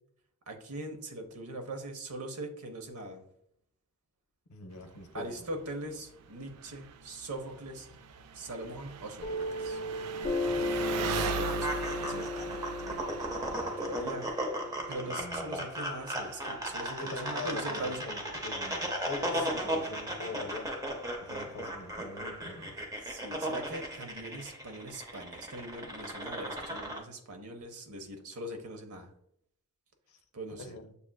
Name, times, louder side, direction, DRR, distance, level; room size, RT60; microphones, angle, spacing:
voice 1, 0.5-3.2 5.1-7.9 8.3-9.8 11.3-12.6 13.5-14.3 14.9-18.0 19.5-19.6 23.0-29.1 30.3-30.8, right 1 dB, 70° right, 0.7 m, -41 dB
voice 2, 4.5-5.3 10.5-11.2 15.1-15.6 16.9-20.7 21.2-22.8 30.1-30.2 30.6-30.9, left 3 dB, 75° left, 0.6 m, -43 dB
Engine, 4.7-22.9, right 6 dB, 85° right, 0.3 m, -43 dB
Piano, 9.2-16.3, left 2 dB, 35° left, 0.6 m, -36 dB
sound 1, 10.8-27.0, right 1 dB, 15° right, 0.6 m, -36 dB
6.9 x 2.4 x 2.2 m
head